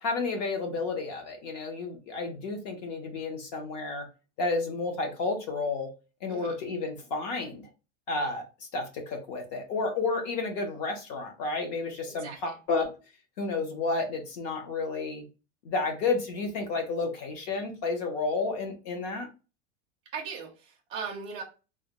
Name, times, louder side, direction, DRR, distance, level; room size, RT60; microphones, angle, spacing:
voice 1, 0.0-4.1 4.4-5.9 6.2-7.7 8.1-8.4 8.7-12.9 13.4-15.2 15.6-19.3, left 3 dB, 35° left, 4 dB, 0.7 m, -31 dB
voice 2, 20.1-21.4, right 5 dB, 15° right, -1 dB, 0.5 m, -38 dB
3.6 x 2.2 x 2.8 m, 0.31 s
supercardioid pair, 180°, 35 cm